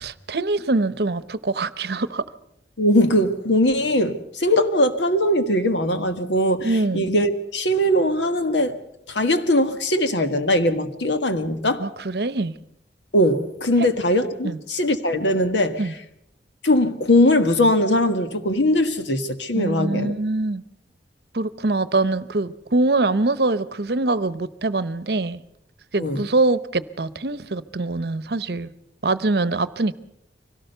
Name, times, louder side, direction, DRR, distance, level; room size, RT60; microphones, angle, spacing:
voice 1, 0.0-2.2 6.6-7.1 11.8-12.5 13.8-13.9 14.4-14.6 15.8-15.9 19.5-20.6 21.3-25.4 25.9-28.7 29.0-29.9, right 2 dB, 60° right, 0.8 m, -23 dB
voice 2, 2.8-8.8 9.1-11.9 13.1-15.8 16.6-20.1 26.0-26.2, left 1 dB, 85° left, 1.6 m, -20 dB
24.5 x 17.5 x 6.8 m
head